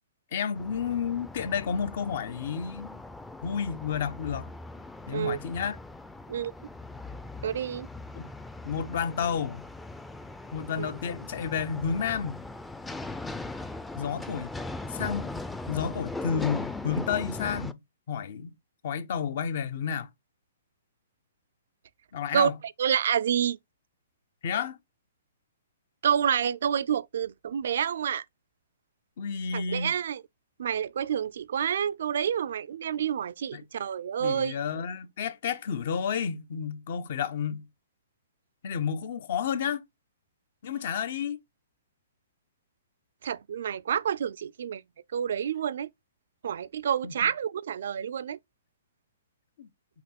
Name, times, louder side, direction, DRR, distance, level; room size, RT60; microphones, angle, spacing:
voice 1, 0.3-3.0 3.4-4.5 5.1-5.8 8.2-8.3 8.6-9.6 10.5-12.4 14.0-14.5 14.9-15.4 15.7-17.8 18.1-18.5 18.8-20.1 22.1-22.6 24.4-24.8 29.2-30.0 33.5-33.6 34.2-37.7 38.6-39.8 40.6-41.4 47.0-47.2 49.6-49.7, left 7 dB, 60° left, 0.7 m, -31 dB
sound 1, 0.5-17.7, left 2 dB, 5° left, 0.4 m, -40 dB
voice 2, 7.4-7.9 10.8-10.9 22.3-22.5 22.8-23.6 26.0-28.2 29.5-30.2 30.6-34.6 43.2-44.8 45.1-45.9 46.4-48.4, right 8 dB, 65° right, 0.3 m, -28 dB
4.3 x 2.9 x 4.1 m
hypercardioid pair, 130°, 0 cm